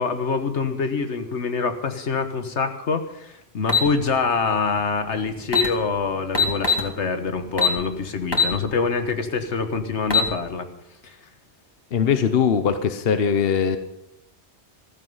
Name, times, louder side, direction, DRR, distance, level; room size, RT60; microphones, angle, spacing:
voice 1, 0.0-10.7 11.0-11.2, left 4 dB, 80° left, 8 dB, 1.6 m, -25 dB
sound 1, 3.7-3.9 5.1-5.2 5.4-5.7 6.3-6.9 7.6-7.8 8.3-8.5 9.0-9.1 9.9-10.3, left 5 dB, 20° left, 2.3 m, -19 dB
voice 2, 11.9-13.8, left 7 dB, 60° left, 9 dB, 1.1 m, -20 dB
14.5 x 14.5 x 5.5 m, 0.83 s
omnidirectional pair, 1.2 m